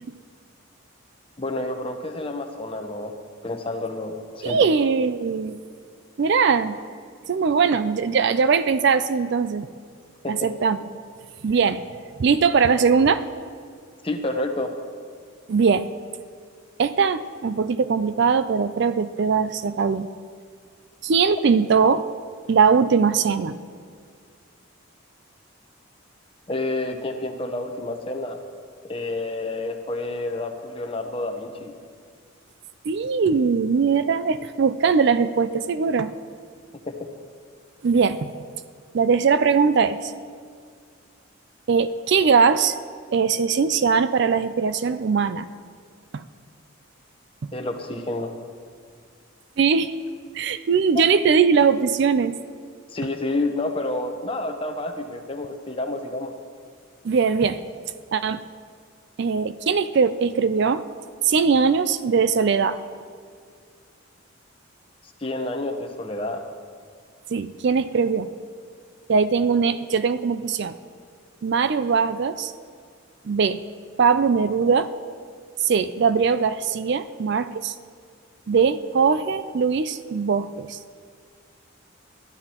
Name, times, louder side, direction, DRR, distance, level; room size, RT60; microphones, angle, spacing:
voice 1, 1.4-3.2 3.4-4.7 10.2-10.4 14.0-14.7 26.5-28.4 28.9-31.7 36.9-37.1 47.5-48.3 50.9-51.0 52.9-56.4 65.2-66.4, left 2 dB, 25° left, 4 dB, 0.9 m, -29 dB
voice 2, 4.4-5.6 6.2-6.8 7.3-9.7 10.3-10.8 11.4-11.8 12.2-13.2 15.5-15.9 16.8-20.1 21.0-22.0 22.5-23.6 32.9-36.1 37.8-38.3 38.9-40.1 41.7-42.8 43.1-45.5 46.1-46.2 47.4-47.5 49.6-49.9 50.3-52.4 57.0-57.6 58.1-58.4 59.2-60.8 61.2-62.8 67.3-68.3 69.1-70.8 71.4-72.5 73.3-73.6 74.0-74.9 75.6-77.7 78.5-80.8, right 5 dB, 50° right, 12 dB, 0.4 m, -20 dB
22.0 x 13.0 x 3.0 m, 2.1 s
head